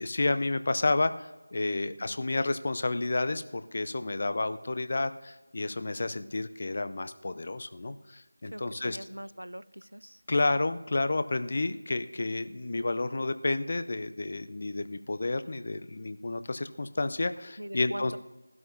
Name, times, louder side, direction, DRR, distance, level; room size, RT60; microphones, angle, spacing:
voice 1, 0.0-9.0 10.3-18.2, left 2 dB, 35° left, 12 dB, 0.5 m, -30 dB
voice 2, 8.4-10.2 17.6-18.2, right 1 dB, 75° right, 17 dB, 0.5 m, -42 dB
20.0 x 12.0 x 2.7 m, 1.1 s
figure-of-eight pair, 170°, 0 cm